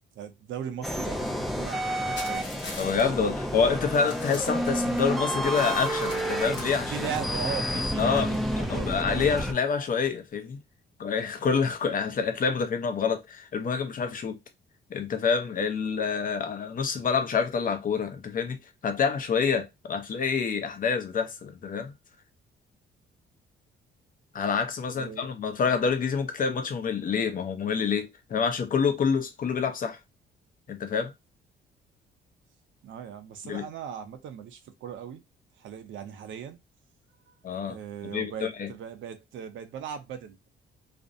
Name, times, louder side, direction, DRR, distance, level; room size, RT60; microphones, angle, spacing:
voice 1, 0.2-2.6 6.9-9.3 24.9-25.3 32.8-35.2 35.6-36.6 37.3-37.4 37.6-40.5, right 8 dB, 75° right, 0.6 m, -38 dB
sound 1, 0.8-9.5, equal, ahead, 0.4 m, -30 dB
sound 2, 2.2-3.0 3.5-3.6 3.9-5.0 5.4-6.8, left 3 dB, 70° left, 1.0 m, -42 dB
voice 2, 2.8-7.1 8.0-8.3 8.6-10.6 11.0-14.4 14.9-18.6 18.8-21.9 24.3-30.0 30.7-31.1 33.4-33.7 37.4-37.8 38.0-38.7, left 6 dB, 45° left, 0.6 m, -27 dB
2.5 x 2.0 x 2.5 m
cardioid pair, 90°, 20 cm